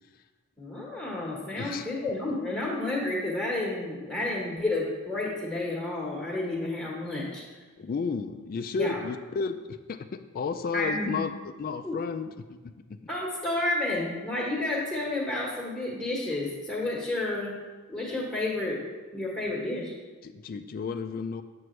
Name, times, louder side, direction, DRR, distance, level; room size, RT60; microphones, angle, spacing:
voice 1, 0.6-7.4 8.8-9.0 10.7-11.2 11.8-11.9 13.1-17.5 17.9-18.8 19.1-19.9, left 2 dB, 5° left, -6 dB, 1.3 m, -30 dB
voice 2, 1.6-1.9 7.8-11.3 11.6-13.0 20.2-21.4, left 5 dB, 40° left, 10 dB, 0.3 m, -33 dB
7.7 x 7.7 x 3.2 m, 1.3 s
head